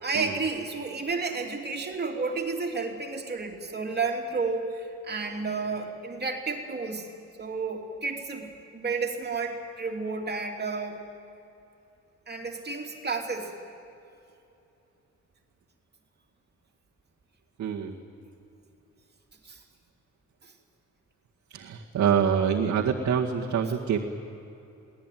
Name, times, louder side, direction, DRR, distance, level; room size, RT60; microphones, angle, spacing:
voice 1, 0.0-7.1 7.4-11.0 12.3-13.5 19.4-19.6 20.4-20.5, right 4 dB, 35° right, 2 dB, 3.0 m, -31 dB
voice 2, 17.6-17.9 21.5-24.0, right 7 dB, 65° right, -3 dB, 2.0 m, -25 dB
21.5 x 18.0 x 9.3 m, 2.8 s
cardioid pair, 90°, 30 cm